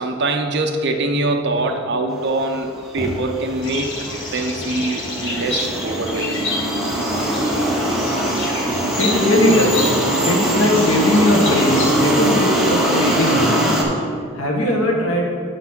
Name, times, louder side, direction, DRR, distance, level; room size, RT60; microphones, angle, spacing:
voice 1, 0.0-6.5, right 2 dB, 55° right, 4 dB, 0.7 m, -23 dB
sound 1, 2.5-2.7 3.0-13.8, right 1 dB, ahead, 1.0 m, -22 dB
sound 2, 3.6-12.0, left 3 dB, 60° left, 1.2 m, -30 dB
voice 2, 9.0-9.9 10.2-13.6 14.4-15.2, left 1 dB, 90° left, 0 dB, 1.3 m, -19 dB
7.9 x 4.0 x 6.0 m, 2.3 s
head